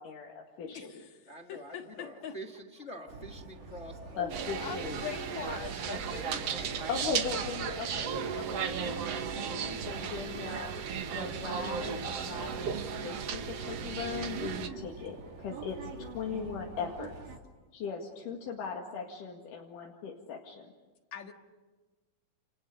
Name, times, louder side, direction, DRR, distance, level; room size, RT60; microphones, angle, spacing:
voice 1, 0.0-0.9 4.2-5.0 6.9-8.1 8.4-10.7 11.1-17.1 17.7-20.7, left 6 dB, 80° left, 0 dB, 3.6 m, -39 dB
voice 2, 0.7-2.4 7.1-7.3 21.1-21.3, left 8 dB, 65° left, 5 dB, 2.9 m, -45 dB
voice 3, 1.3-4.3 6.5-6.9, equal, 45° left, 6 dB, 0.8 m, -46 dB
sound 1, 3.1-17.4, right 4 dB, 75° right, 4.2 m, -46 dB
sound 2, 4.3-14.7, right 7 dB, 60° right, 2.1 m, -35 dB
voice 4, 4.6-6.9 7.6-7.9, left 7 dB, 30° left, 4 dB, 1.9 m, -42 dB
30.0 x 29.5 x 6.7 m, 1.2 s
omnidirectional pair, 3.7 m